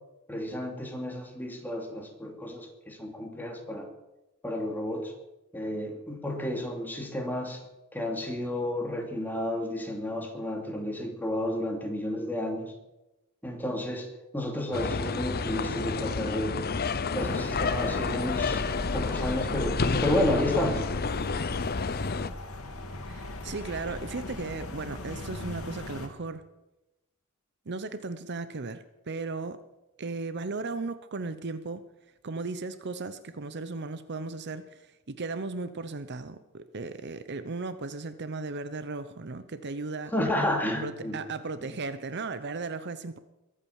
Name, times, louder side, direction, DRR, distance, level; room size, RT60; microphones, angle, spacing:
voice 1, 0.3-3.9 4.4-5.1 5.5-7.6 7.9-12.7 13.4-14.1 14.3-16.6 17.1-18.7 18.9-20.9 40.1-41.2, left 1 dB, 10° left, 2 dB, 2.8 m, -31 dB
sound 1, 14.7-22.3, left 4 dB, 45° left, 0.7 m, -30 dB
sound 2, 17.2-26.1, left 1 dB, 85° left, 2.3 m, -38 dB
voice 2, 23.1-26.4 27.7-29.6 30.0-31.8 32.2-40.1 40.8-43.2, right 3 dB, 55° right, 12 dB, 0.8 m, -36 dB
22.5 x 8.8 x 7.2 m, 0.99 s
head